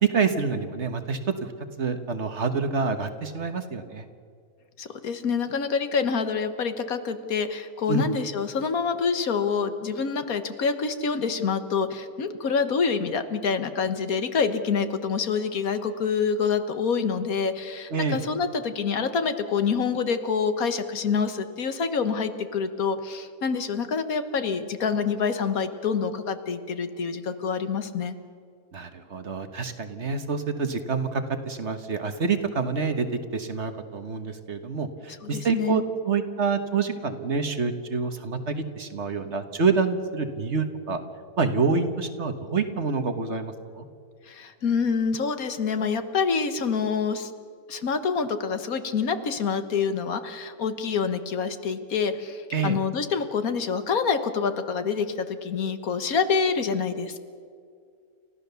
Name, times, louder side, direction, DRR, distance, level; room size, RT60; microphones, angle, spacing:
voice 1, 0.0-1.5 1.8-4.1 7.9-8.0 17.9-18.2 28.7-41.0 41.4-43.8 52.5-52.8, right 5 dB, 50° right, 8 dB, 1.5 m, -27 dB
voice 2, 4.8-28.1 35.2-35.8 44.3-47.3 47.7-57.2, left 5 dB, 70° left, 9 dB, 1.6 m, -26 dB
30.0 x 14.0 x 7.0 m, 2.2 s
omnidirectional pair, 1.6 m